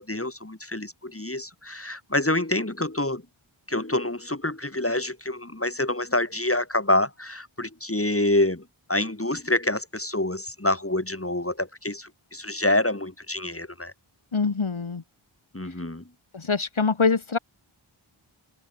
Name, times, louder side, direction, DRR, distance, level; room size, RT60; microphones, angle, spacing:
voice 1, 0.0-3.2 3.7-13.9 15.5-16.0, left 1 dB, 25° left, 4.9 m, -27 dB
voice 2, 14.3-15.0 16.3-17.4, left 4 dB, 70° left, 2.0 m, -24 dB
open air
wide cardioid pair, 50°, 50 cm